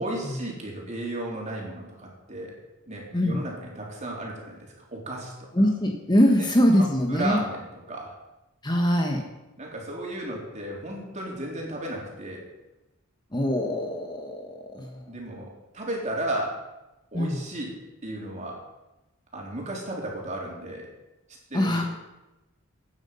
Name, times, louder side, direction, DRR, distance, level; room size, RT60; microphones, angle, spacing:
voice 1, 0.0-2.5 2.9-5.5 6.4-6.5 6.8-8.1 9.6-12.5 15.1-16.6 17.1-17.7 18.0-18.6 19.3-20.9 21.5-21.8, right 1 dB, 35° right, -2 dB, 3.8 m, -34 dB
voice 2, 5.5-7.4 8.6-9.2 13.3-15.0 17.1-17.4 21.5-21.8, equal, 20° left, 2 dB, 1.3 m, -23 dB
15.5 x 9.5 x 5.6 m, 1.0 s
head